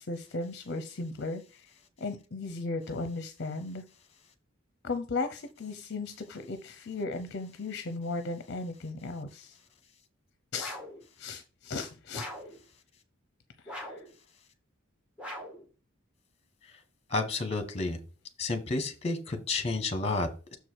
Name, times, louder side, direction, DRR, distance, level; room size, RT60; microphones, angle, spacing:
voice 1, 0.0-1.7 2.0-3.8 4.8-9.6 10.5-10.8 11.2-12.3 13.6-14.1, left 3 dB, 55° left, 9 dB, 0.7 m, -36 dB
sound 1, 10.6-11.0 12.1-12.6 13.7-14.1 15.2-15.7, left 1 dB, 5° right, 1.8 m, -41 dB
voice 2, 17.1-18.0 18.4-20.6, left 3 dB, 30° left, 8 dB, 1.3 m, -31 dB
6.8 x 4.7 x 4.6 m, 0.34 s
head